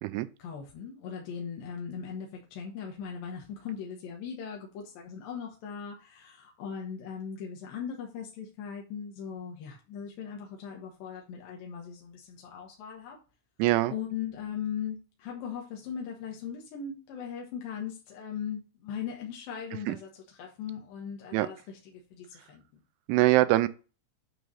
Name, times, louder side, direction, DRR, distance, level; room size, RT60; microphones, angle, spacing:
voice 1, 0.4-13.2 13.9-20.1 20.4-22.8, left 7 dB, 70° left, 2.2 m, -39 dB
voice 2, 13.6-13.9 19.9-20.0 21.3-21.5 23.1-23.7, right 18 dB, 85° right, 3.0 m, -23 dB
9.0 x 3.1 x 5.4 m
omnidirectional pair, 5.4 m